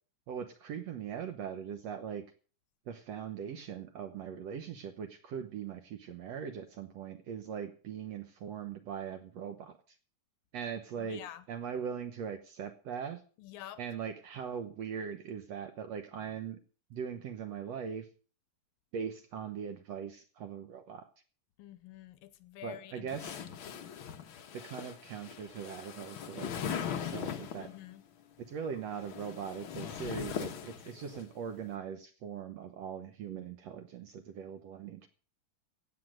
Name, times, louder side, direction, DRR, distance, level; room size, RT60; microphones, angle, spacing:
voice 1, 0.3-2.2 2.9-10.0 10.5-11.2 11.5-13.2 13.8-16.6 16.9-18.1 18.9-21.1 22.6-23.4 24.5-27.7 28.4-35.1, right 7 dB, 65° right, 1.8 m, -40 dB
voice 2, 11.0-11.4 13.4-13.8 21.6-23.1 27.6-28.0, left 13 dB, 80° left, 2.6 m, -48 dB
sound 1, 23.1-27.8 28.8-31.2, left 8 dB, 65° left, 1.2 m, -40 dB
15.5 x 8.6 x 6.5 m
omnidirectional pair, 4.0 m